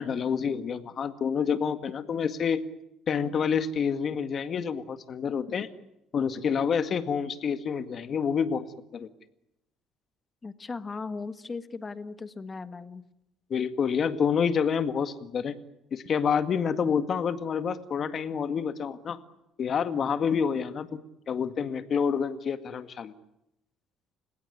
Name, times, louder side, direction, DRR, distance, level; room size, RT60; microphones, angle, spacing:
voice 1, 0.0-2.6 3.1-5.7 6.1-8.7 8.9-9.1 13.5-15.5 15.9-19.2 19.6-20.9 21.3-23.1, left 6 dB, 45° left, 10 dB, 1.9 m, -28 dB
voice 2, 10.4-13.0, left 4 dB, 25° left, 12 dB, 1.5 m, -37 dB
30.0 x 17.0 x 9.6 m, 0.85 s
cardioid pair, 115°, 0 cm